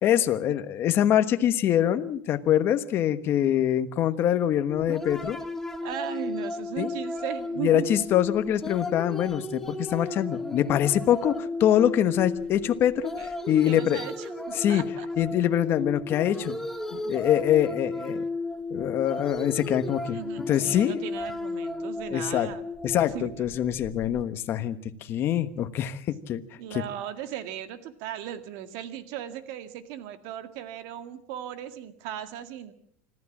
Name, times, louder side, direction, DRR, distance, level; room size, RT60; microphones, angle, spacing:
voice 1, 0.0-5.4 6.8-6.9 7.6-14.0 14.6-14.8 15.2-16.6 16.9-18.2 18.7-21.1 22.1-22.5 22.8-26.4 26.7-26.8, left 11 dB, 35° left, 10 dB, 1.2 m, -24 dB
sound 1, 4.7-24.2, left 2 dB, 5° left, 1.4 m, -34 dB
voice 2, 5.8-7.9 10.0-10.1 13.2-13.3 13.7-15.1 20.1-22.7 23.1-23.5 26.6-32.7, right 10 dB, 60° right, 9 dB, 1.9 m, -37 dB
25.5 x 14.0 x 7.3 m, 0.69 s
supercardioid pair, 150°, 7 cm